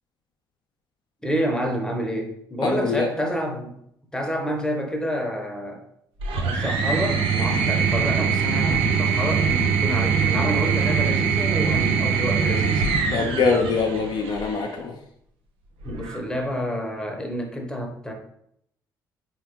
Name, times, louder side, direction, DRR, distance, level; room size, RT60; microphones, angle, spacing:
voice 1, 1.2-3.7 4.1-5.8 6.3-12.8 15.8-18.1, equal, 5° left, 2 dB, 1.0 m, -28 dB
voice 2, 2.6-3.1 13.1-14.9, left 4 dB, 50° left, 2 dB, 0.6 m, -23 dB
sound 1, 6.2-14.6 15.8-16.4, right 6 dB, 65° right, 0.7 m, -23 dB
3.9 x 3.2 x 3.0 m, 0.72 s
hypercardioid pair, 50°, 10 cm